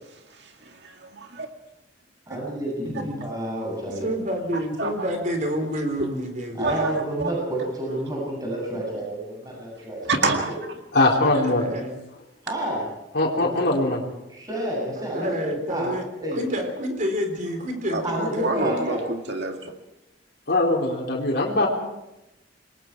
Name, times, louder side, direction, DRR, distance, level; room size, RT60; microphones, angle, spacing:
voice 1, 0.8-1.5 4.8-4.9 6.6-7.3 10.1-10.5 17.9-19.7, right 3 dB, 65° right, 4 dB, 2.1 m, -27 dB
voice 2, 2.3-4.1 6.5-10.6 12.4-12.9 13.3-13.6 14.3-15.3 15.7-15.9 16.2-16.4 18.0-19.0, right 1 dB, 20° right, -2 dB, 7.8 m, -29 dB
voice 3, 2.8-3.2 3.8-6.8 11.3-12.0 15.0-16.0 16.3-18.7, equal, 45° right, 5 dB, 4.3 m, -29 dB
voice 4, 10.9-11.6 13.1-14.0 20.5-21.7, left 2 dB, 60° left, -3 dB, 4.1 m, -21 dB
27.0 x 21.5 x 4.7 m, 0.92 s
head